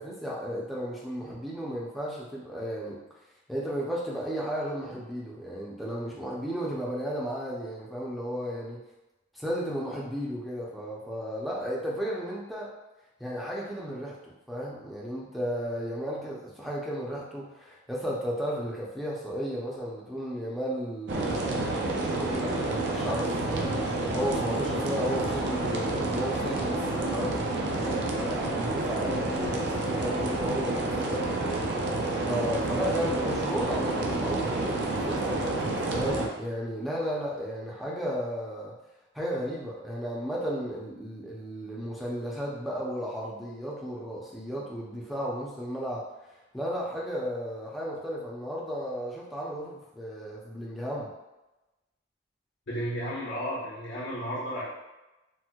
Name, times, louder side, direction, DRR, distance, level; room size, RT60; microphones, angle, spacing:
voice 1, 0.0-3.0 3.5-8.8 9.3-12.8 13.2-31.6 32.2-38.7 39.1-46.0 46.5-51.1, equal, ahead, -6 dB, 0.5 m, -34 dB
sound 1, 21.1-36.3, right 2 dB, 60° right, 0.4 m, -29 dB
voice 2, 52.7-54.7, equal, 70° left, -8 dB, 0.9 m, -33 dB
4.3 x 2.1 x 2.2 m, 1.0 s
head